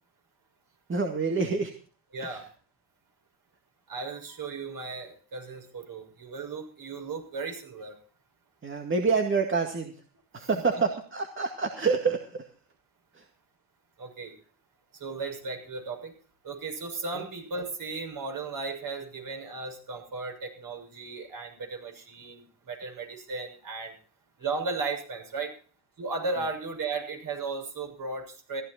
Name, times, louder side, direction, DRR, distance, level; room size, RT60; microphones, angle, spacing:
voice 1, 0.9-1.7 2.2-2.5 8.6-9.9 10.3-12.5 13.1-13.3 17.1-17.3, right 4 dB, 25° right, 4 dB, 2.1 m, -27 dB
voice 2, 2.1-2.4 3.9-7.9 10.4-10.8 14.0-14.3 15.0-16.1 16.4-23.9 24.4-25.5 26.0-28.6, right 3 dB, 50° right, 3 dB, 6.4 m, -35 dB
15.0 x 12.5 x 4.3 m, 0.41 s
hypercardioid pair, 70°, 44 cm